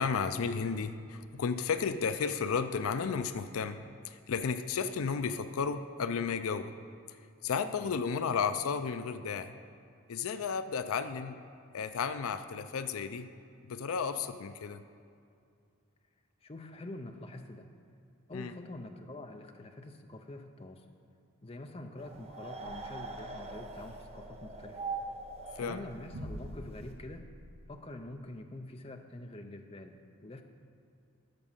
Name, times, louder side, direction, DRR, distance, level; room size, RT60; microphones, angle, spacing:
voice 1, 0.0-6.7 7.4-9.6 10.1-11.4 11.7-13.3 13.6-14.8 18.3-18.6 25.6-25.8, left 6 dB, 75° left, 11 dB, 0.4 m, -33 dB
voice 2, 16.4-17.7 18.3-20.8 21.4-24.8 25.6-27.3 27.7-30.4, left 2 dB, 25° left, 5 dB, 0.5 m, -46 dB
sound 1, 22.0-26.9, right 3 dB, 30° right, 0.7 m, -43 dB
sound 2, 22.6-27.7, right 1 dB, 85° right, 1.0 m, -49 dB
12.0 x 7.1 x 5.6 m, 2.3 s
head